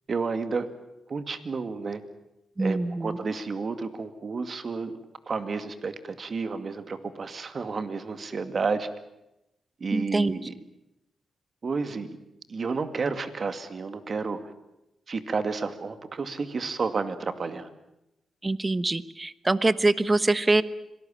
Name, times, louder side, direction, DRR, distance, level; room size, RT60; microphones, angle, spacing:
voice 1, 0.1-0.7 1.1-2.0 2.6-5.0 5.3-8.9 9.8-10.5 11.6-12.2 12.5-14.5 15.1-17.7, right 4 dB, 50° right, 9 dB, 2.3 m, -31 dB
voice 2, 2.6-3.2 9.9-10.3 18.4-20.6, right 2 dB, 25° right, 15 dB, 1.1 m, -24 dB
26.0 x 18.5 x 8.8 m, 0.90 s
cardioid pair, 75°, 0 cm